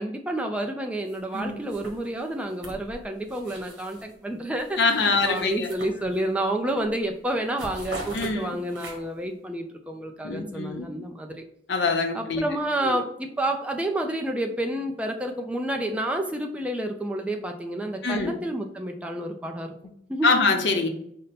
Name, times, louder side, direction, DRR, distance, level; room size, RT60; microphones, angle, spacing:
voice 1, 0.0-11.4 12.1-19.7 20.1-20.4, right 1 dB, 5° right, 3 dB, 0.4 m, -29 dB
sound 1, 1.1-1.4 1.7-4.1 4.5-6.4 6.8-7.0 7.3-9.3, right 1 dB, 75° right, 1.2 m, -42 dB
voice 2, 4.8-5.7 8.1-8.6 10.2-10.9 11.7-12.4 12.8-13.0 18.0-18.3 20.2-20.9, left 3 dB, 70° left, 4 dB, 0.7 m, -24 dB
5.2 x 2.1 x 4.1 m, 0.71 s
head